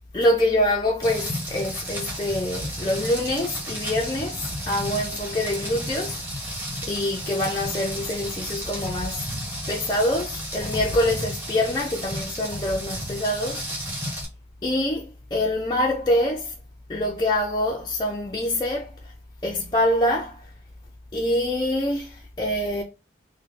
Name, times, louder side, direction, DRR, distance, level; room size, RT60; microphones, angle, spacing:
voice 1, 0.1-6.2 6.8-9.3 9.7-13.8 14.6-16.5 16.9-18.9 19.4-20.4 21.1-22.8, left 1 dB, 20° left, 0.4 m, -25 dB
Rain, 1.0-14.2, equal, 10° right, 1.1 m, -33 dB
3.7 x 2.2 x 3.6 m
head